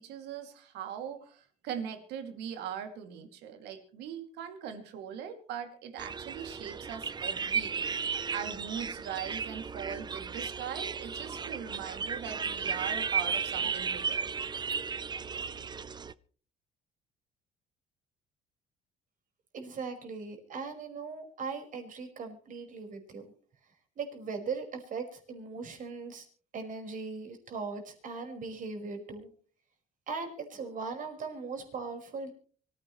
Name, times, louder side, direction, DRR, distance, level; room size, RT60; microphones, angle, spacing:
voice 1, 0.0-14.3, right 8 dB, 85° right, 7 dB, 2.6 m, -41 dB
sound 1, 6.0-16.1, right 6 dB, 25° right, 0.6 m, -34 dB
voice 2, 19.5-23.2 24.0-26.3 26.5-29.3 30.1-32.3, right 4 dB, 50° right, 4 dB, 5.2 m, -39 dB
24.5 x 15.5 x 3.2 m, 0.42 s
cardioid pair, 110°, 17 cm